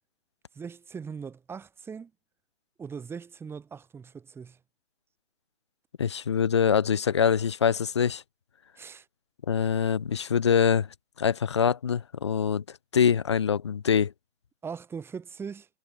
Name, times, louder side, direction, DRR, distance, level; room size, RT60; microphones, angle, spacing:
voice 1, 0.5-2.1 2.8-4.6 8.8-9.1 14.6-15.7, right 6 dB, 5° right, 7.4 m, -40 dB
voice 2, 6.0-8.2 9.5-10.9 11.2-12.6 12.9-14.1, left 7 dB, 25° left, 0.6 m, -24 dB
hypercardioid pair, 160°, 36 cm